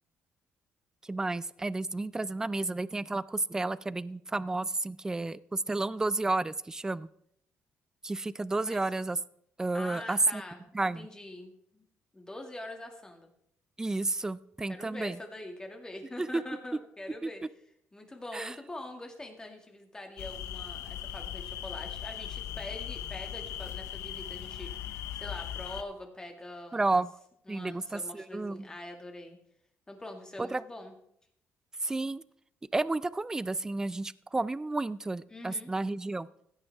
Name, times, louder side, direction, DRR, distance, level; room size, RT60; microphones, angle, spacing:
voice 1, 1.0-7.1 8.0-9.2 9.6-10.4 10.7-11.1 13.8-15.2 16.2-16.4 17.2-17.3 18.3-18.5 26.7-27.1 27.5-28.7 30.4-30.6 31.8-32.2 32.7-36.3, right 2 dB, 15° right, 18 dB, 0.4 m, -31 dB
voice 2, 9.7-10.6 11.0-11.8 12.1-13.3 14.7-17.4 17.9-27.0 27.5-29.4 29.9-30.9 35.3-35.7, left 1 dB, 15° left, 3 dB, 2.1 m, -44 dB
sound 1, 20.2-25.8, left 11 dB, 90° left, 0.6 m, -39 dB
16.0 x 9.0 x 3.5 m, 0.71 s
cardioid pair, 110°, 5 cm